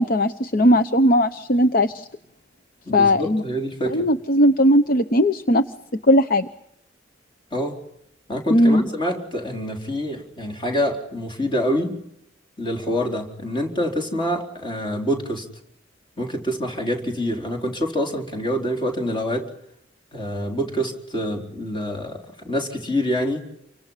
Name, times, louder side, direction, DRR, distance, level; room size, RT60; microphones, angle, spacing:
voice 1, 0.0-2.1 2.9-3.4 3.9-5.6 6.1-6.5 8.5-8.8, equal, 50° left, 9 dB, 0.9 m, -18 dB
voice 2, 2.9-4.1 7.5-7.8 8.3-11.9 12.6-15.5 16.2-19.5 20.1-23.4, equal, 25° left, 2 dB, 4.4 m, -26 dB
29.0 x 25.0 x 5.7 m, 0.77 s
head